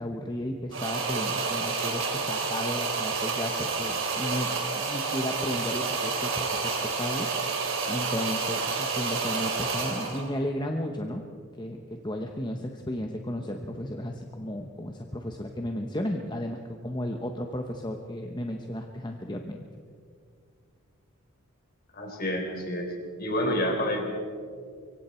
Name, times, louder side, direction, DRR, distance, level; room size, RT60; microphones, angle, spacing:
voice 1, 0.0-7.3 7.9-11.2 11.6-19.7, left 1 dB, 20° left, 3 dB, 1.0 m, -34 dB
sound 1, 0.7-10.3, right 4 dB, 65° right, 3.6 m, -29 dB
voice 2, 21.9-22.9 23.2-24.0, equal, 45° left, 2 dB, 4.1 m, -28 dB
25.0 x 23.5 x 4.5 m, 2.1 s
head